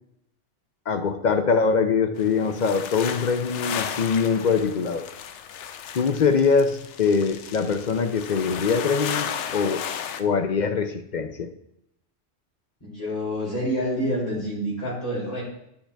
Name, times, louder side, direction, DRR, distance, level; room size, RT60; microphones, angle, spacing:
voice 1, 0.9-5.1 5.9-9.9 10.2-11.5, left 5 dB, 55° left, 8 dB, 0.5 m, -23 dB
sound 1, 2.2-10.2, left 8 dB, 75° left, 0.9 m, -34 dB
voice 2, 12.8-15.4, equal, 30° left, -8 dB, 3.8 m, -27 dB
9.9 x 5.7 x 3.4 m, 0.77 s
omnidirectional pair, 1.3 m